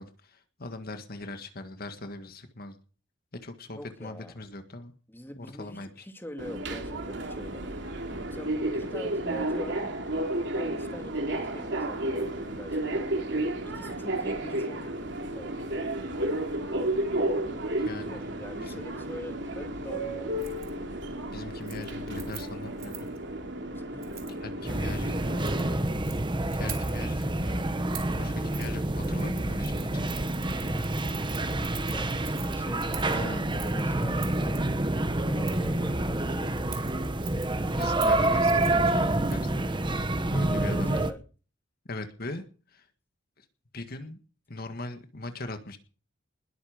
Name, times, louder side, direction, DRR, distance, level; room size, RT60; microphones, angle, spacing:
voice 1, 0.0-2.8 3.4-4.9 5.4-5.9 17.8-18.3 18.6-18.8 21.3-23.1 24.3-25.2 26.5-27.6 28.2-30.1 30.6-30.8 33.1-33.5 37.8-39.5 40.3-40.9 41.9-42.9 43.4-43.5 43.7-44.2 44.5-45.8, left 2 dB, 50° left, 8 dB, 1.8 m, -40 dB
voice 2, 3.7-4.3 5.1-7.7 8.3-9.8 10.5-13.0 13.7-15.6 18.0-20.4 23.7-24.4 24.8-24.9 30.4-31.1 31.4-31.6 31.9-34.7 35.3-36.8 40.8-41.2, left 1 dB, 10° left, 6 dB, 2.3 m, -44 dB
Subway metro underground, 6.4-25.7, right 1 dB, 65° right, 3.1 m, -32 dB
Keys jangling, 20.4-20.7 21.1-21.3 21.6-23.2 24.0-24.4 25.2-26.2 26.5-27.2 27.9-28.2 28.5-28.7 29.0-34.6 35.4-35.8 36.6-39.6 39.9-40.0, right 11 dB, 50° right, 4.0 m, -45 dB
sound 1, 24.6-41.1, right 1 dB, 25° right, 1.2 m, -28 dB
20.5 x 13.0 x 5.1 m, 0.39 s
head